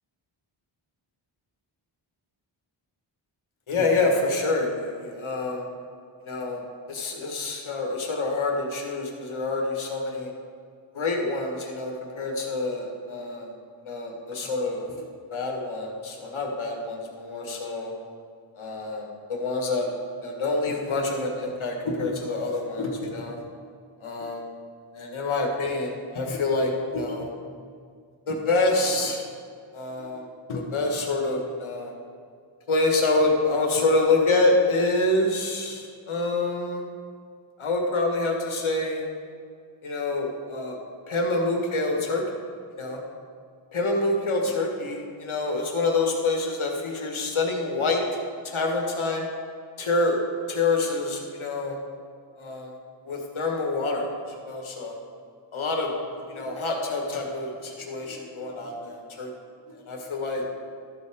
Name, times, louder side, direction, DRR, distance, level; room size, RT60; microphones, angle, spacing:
voice 1, 3.7-5.6 6.2-6.6 6.9-10.3 10.9-13.5 13.9-14.8 15.3-17.9 18.6-19.9 20.2-23.4 24.0-24.4 24.9-27.3 28.3-29.2 29.7-30.2 30.5-31.9 32.7-36.8 37.6-39.0 39.8-40.8 41.1-42.2 42.8-43.0 43.7-48.0 48.4-49.2 49.8-50.2 50.5-51.8 52.4-52.7 53.1-54.1 54.5-55.0 55.5-55.9 56.3-59.3 59.9-60.4, left 2 dB, 75° left, 1 dB, 1.6 m, -26 dB
12.5 x 7.3 x 3.6 m, 2.2 s
wide cardioid pair, 160°, 49 cm